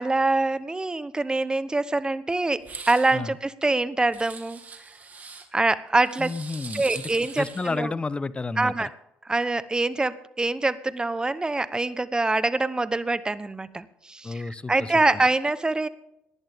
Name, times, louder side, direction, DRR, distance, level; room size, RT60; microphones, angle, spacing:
voice 1, 0.0-2.6 2.9-4.6 5.5-6.3 6.7-7.9 8.6-8.9 9.2-15.9, right 2 dB, 20° right, 15 dB, 0.9 m, -25 dB
sound 1, 2.6-3.1 4.1-5.5 6.1-7.8, right 4 dB, 35° right, 2.4 m, -41 dB
voice 2, 6.2-7.1 7.4-8.9 14.2-14.9, left 3 dB, 25° left, 17 dB, 0.8 m, -31 dB
18.5 x 11.0 x 3.6 m, 0.84 s
supercardioid pair, 75°, 4 cm